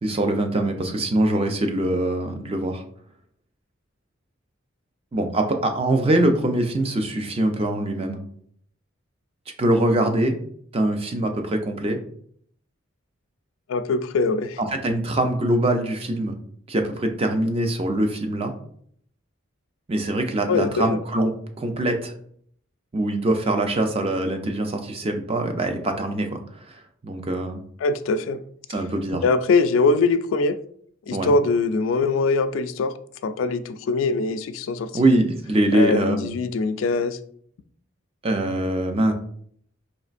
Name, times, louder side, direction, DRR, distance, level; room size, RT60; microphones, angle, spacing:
voice 1, 0.0-2.8 5.1-8.2 9.6-10.4 10.7-12.0 14.6-16.4 16.7-18.5 19.9-21.3 21.6-22.1 22.9-26.4 26.7-27.6 28.7-29.2 31.1-31.3 34.9-36.3 38.2-39.1, right 1 dB, 30° right, 5 dB, 0.4 m, -23 dB
voice 2, 13.7-14.6 20.5-21.0 27.8-28.4 29.2-30.6 31.1-32.9 33.2-35.2 35.7-37.2, left 3 dB, 70° left, 11 dB, 0.3 m, -22 dB
4.2 x 3.1 x 2.4 m, 0.62 s
head